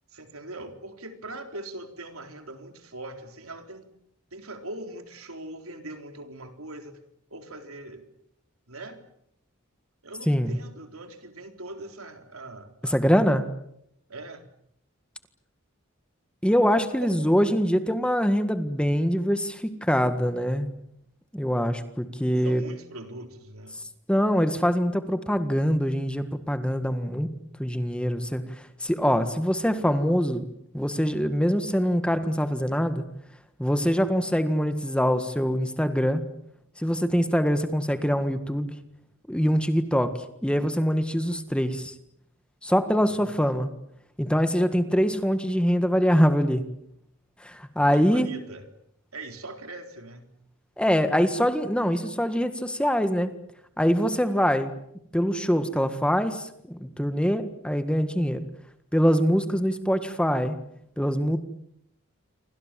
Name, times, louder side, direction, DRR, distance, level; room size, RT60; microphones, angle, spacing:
voice 1, 0.1-3.9 4.3-7.0 7.3-8.1 8.7-9.0 10.0-13.0 14.1-14.5 17.0-17.3 22.4-23.8 43.1-43.3 47.9-48.7 49.1-50.3, right 2 dB, 85° right, 6 dB, 4.0 m, -41 dB
voice 2, 10.3-10.6 12.8-13.5 16.4-20.7 21.3-22.6 24.1-27.3 27.6-30.5 30.7-33.0 33.6-36.2 36.8-38.7 39.3-41.9 42.6-43.7 44.2-46.6 47.4-48.3 50.8-53.3 53.8-54.7 55.1-58.4 58.9-60.6 61.0-61.4, equal, 5° left, 9 dB, 1.7 m, -24 dB
28.5 x 25.0 x 7.6 m, 0.76 s
head